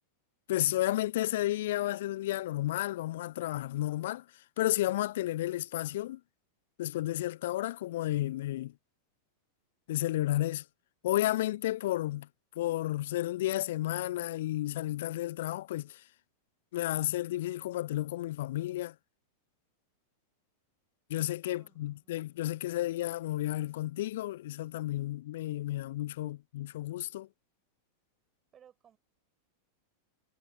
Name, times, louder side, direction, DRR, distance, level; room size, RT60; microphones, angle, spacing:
voice 1, 0.5-4.2 4.6-6.2 6.8-8.7 9.9-10.6 11.0-12.3 12.6-16.0 16.7-18.9 21.1-27.3, left 15 dB, 55° left, 0.4 m, -32 dB
voice 2, 21.5-22.2 28.5-29.0, right 9 dB, 25° right, 5.9 m, -61 dB
figure-of-eight pair, 90°, 0 cm